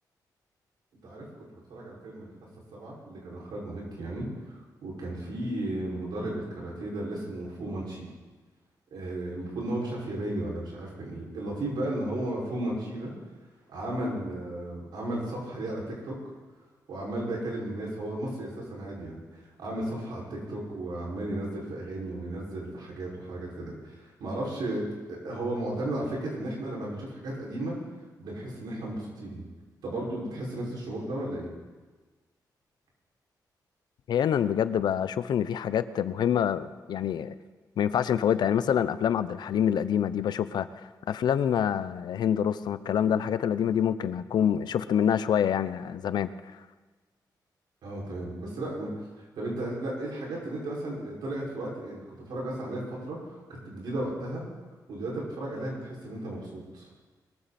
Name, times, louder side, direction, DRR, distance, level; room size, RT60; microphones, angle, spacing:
voice 1, 1.5-2.3 2.7-8.1 8.9-13.1 13.7-16.2 16.9-27.8 28.2-29.4 29.8-31.5 47.8-48.9 49.4-53.2 53.5-54.4 54.9-56.9, right 1 dB, 85° right, -3 dB, 5.6 m, -34 dB
voice 2, 34.1-37.3 37.8-40.7 41.1-46.3, left 9 dB, 80° left, 14 dB, 0.7 m, -26 dB
22.0 x 14.0 x 4.3 m, 1.3 s
wide cardioid pair, 150°, 7 cm